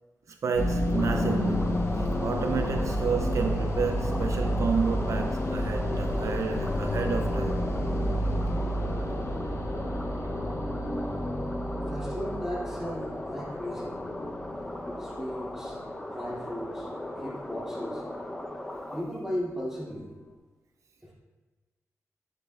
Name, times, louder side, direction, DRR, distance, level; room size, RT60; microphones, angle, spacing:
voice 1, 0.3-7.6, right 5 dB, 65° right, 0.4 m, -31 dB
sound 1, 0.5-18.9, left 1 dB, 50° left, 0.8 m, -31 dB
sound 2, 0.9-19.0, left 1 dB, 10° left, 0.6 m, -38 dB
voice 2, 11.9-14.0 15.0-15.8 16.1-18.0 18.9-20.1 21.0-21.1, equal, 10° right, 2.4 m, -36 dB
9.3 x 7.5 x 2.3 m
wide cardioid pair, 120°, 6 cm